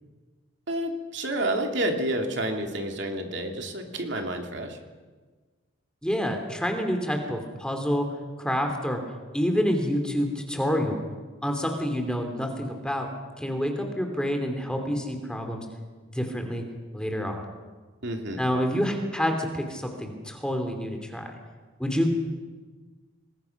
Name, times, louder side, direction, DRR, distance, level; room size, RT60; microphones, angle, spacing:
voice 1, 0.7-4.8 18.0-18.5, right 1 dB, 60° right, 3 dB, 2.8 m, -29 dB
voice 2, 6.0-8.1 8.4-9.0 9.3-11.0 11.4-13.1 13.4-15.6 16.1-16.6 16.9-17.4 18.4-21.3 21.8-22.1, equal, 5° left, 4 dB, 2.8 m, -27 dB
28.0 x 21.0 x 5.9 m, 1.4 s
head